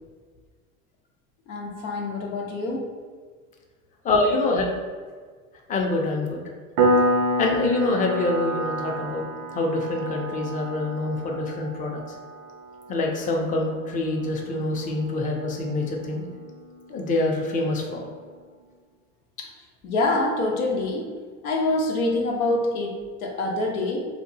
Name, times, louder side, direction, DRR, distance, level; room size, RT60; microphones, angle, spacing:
voice 1, 1.5-2.8 19.4-19.5 19.8-21.1 21.4-24.1, left 2 dB, 90° left, -1 dB, 0.7 m, -26 dB
voice 2, 4.0-4.7 5.7-6.4 7.4-9.2 9.5-12.0 12.9-16.2 16.9-18.0, left 2 dB, 20° left, 0 dB, 0.5 m, -25 dB
Piano, 6.8-17.2, right 1 dB, 75° right, 0.6 m, -29 dB
2.8 x 2.2 x 2.6 m, 1.5 s
hypercardioid pair, 85°, 41 cm